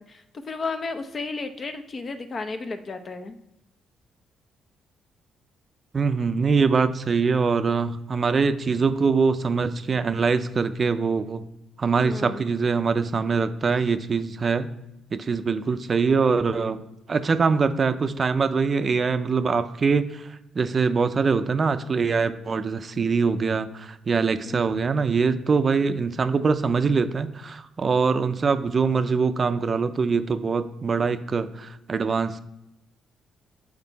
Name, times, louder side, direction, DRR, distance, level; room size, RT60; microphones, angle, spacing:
voice 1, 0.1-3.3 12.0-12.4 24.5-24.6, left 3 dB, 40° left, 9 dB, 0.7 m, -33 dB
voice 2, 5.9-11.5 11.8-14.7 15.1-16.8 17.1-32.4, right 5 dB, 40° right, 11 dB, 0.5 m, -23 dB
7.4 x 4.6 x 4.0 m, 0.88 s
cardioid pair, 90°, 0 cm